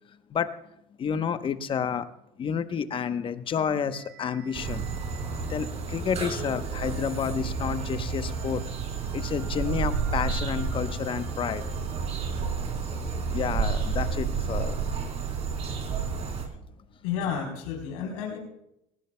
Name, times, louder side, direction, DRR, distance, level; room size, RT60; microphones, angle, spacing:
voice 1, 1.0-2.1 2.4-4.9 5.5-8.6 9.1-11.6 12.9-13.0 13.3-14.8, left 7 dB, 30° left, 11 dB, 0.9 m, -30 dB
sound 1, 3.9-12.1, right 7 dB, 70° right, 3.7 m, -52 dB
sound 2, 4.5-16.5, right 5 dB, 40° right, 3.5 m, -31 dB
voice 2, 17.0-18.4, left 7 dB, 85° left, -1 dB, 3.8 m, -31 dB
19.0 x 18.5 x 2.2 m, 0.81 s
supercardioid pair, 125°, 17 cm